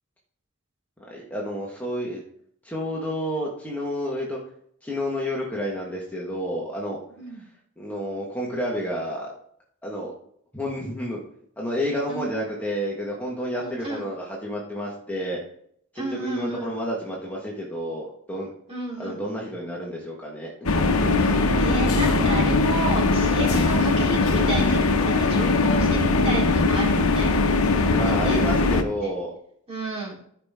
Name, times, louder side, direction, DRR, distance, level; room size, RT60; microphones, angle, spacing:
voice 1, 1.1-2.2 2.6-4.4 4.8-7.0 7.8-9.3 9.8-10.1 10.5-11.2 11.6-15.4 15.9-18.5 19.0-20.5 27.9-29.3, equal, 5° left, -4 dB, 1.6 m, -30 dB
voice 2, 13.6-14.0 15.9-16.7 18.7-19.2 21.2-28.4 29.0-29.1 29.7-30.1, right 2 dB, 30° right, -4 dB, 3.8 m, -32 dB
sound 1, 20.7-28.8, left 3 dB, 85° left, 0.9 m, -20 dB
14.0 x 5.8 x 3.7 m, 0.66 s
head